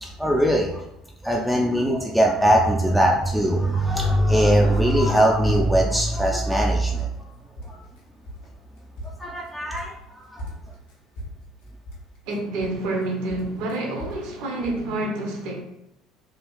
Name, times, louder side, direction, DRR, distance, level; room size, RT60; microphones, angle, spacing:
voice 1, 0.0-0.8 1.2-7.1 7.7-7.8 9.2-9.9 10.3-10.4, right 1 dB, ahead, 0.3 m, -20 dB
sound 1, 5.2-5.9 6.2-7.2 7.6-8.5 8.8-10.0 10.4-13.0 13.3-14.3 14.6-14.8, equal, 70° left, 0.8 m, -37 dB
voice 2, 12.3-15.6, right 2 dB, 60° right, 0.6 m, -28 dB
3.2 x 2.4 x 2.3 m
figure-of-eight pair, 60°, 0 cm